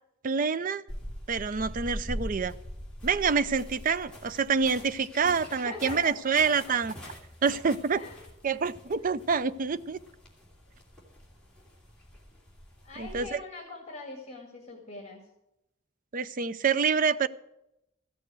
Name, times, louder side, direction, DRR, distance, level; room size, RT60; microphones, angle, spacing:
voice 1, 0.2-0.8 1.3-2.6 3.0-6.9 7.4-8.0 8.4-10.0 13.0-13.4 16.1-17.3, right 5 dB, 40° right, 15 dB, 0.5 m, -27 dB
sound 1, 0.9-13.3, equal, 5° left, 3.1 m, -43 dB
voice 2, 5.1-6.1 7.9-8.2 12.8-15.2, left 3 dB, 30° left, 1 dB, 2.1 m, -42 dB
14.5 x 6.7 x 9.2 m, 0.84 s
head